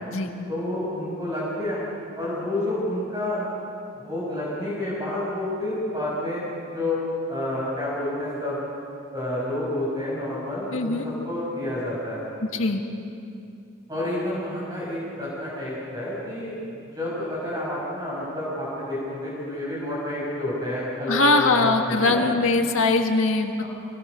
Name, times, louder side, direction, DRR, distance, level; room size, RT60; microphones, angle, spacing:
voice 1, 0.5-1.8 2.2-3.4 4.0-6.4 6.7-7.0 7.3-8.6 9.1-12.2 13.9-16.5 16.9-22.2 23.6-23.7, left 1 dB, 20° right, -7 dB, 6.2 m, -29 dB
voice 2, 10.7-11.1 12.5-12.8 21.1-23.6, left 3 dB, 75° left, 3 dB, 1.8 m, -21 dB
24.5 x 20.0 x 6.7 m, 2.6 s
head